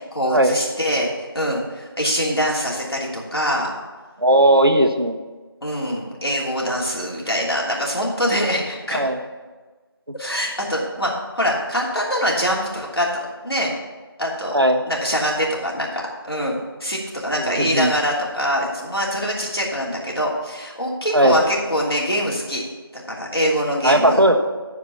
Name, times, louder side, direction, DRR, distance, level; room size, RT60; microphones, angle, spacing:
voice 1, 0.1-1.1 1.3-3.7 5.6-9.0 10.2-13.7 14.2-14.6 14.9-22.6 23.1-24.2, equal, 75° left, -3 dB, 3.1 m, -24 dB
voice 2, 4.2-5.2 8.9-9.2 14.5-14.8 17.4-17.9 21.1-21.4 23.8-24.4, right 1 dB, 70° right, 6 dB, 1.1 m, -17 dB
11.0 x 4.8 x 7.2 m, 1.3 s
figure-of-eight pair, 180°, 13 cm